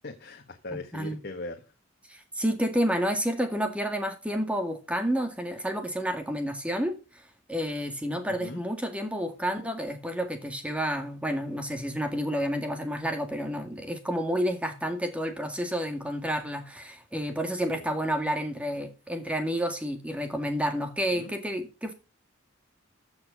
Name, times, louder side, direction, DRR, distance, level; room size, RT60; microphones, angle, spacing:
voice 1, 0.0-1.7 8.3-8.6 17.5-17.9 21.1-21.3, left 2 dB, 55° left, 1.4 m, -40 dB
voice 2, 2.1-7.0 7.5-21.9, equal, 5° right, 2.1 m, -30 dB
14.0 x 6.5 x 5.3 m
head